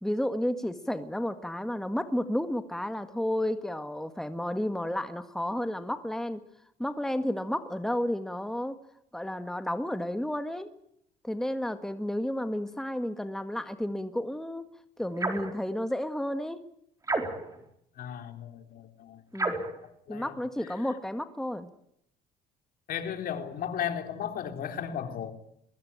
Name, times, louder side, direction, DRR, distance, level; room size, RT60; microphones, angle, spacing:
voice 1, 0.0-6.4 6.8-8.8 9.1-10.7 11.2-14.7 15.0-16.6 19.3-19.6 20.1-21.7, left 1 dB, 5° left, 1.7 m, -32 dB
sound 1, 15.2-15.6 17.0-17.6 19.3-19.8, right 2 dB, 20° right, 4.5 m, -30 dB
voice 2, 18.0-19.2 20.1-20.3 22.9-25.3, left 8 dB, 60° left, 3.6 m, -35 dB
23.0 x 21.5 x 9.0 m
cardioid pair, 110°, 17 cm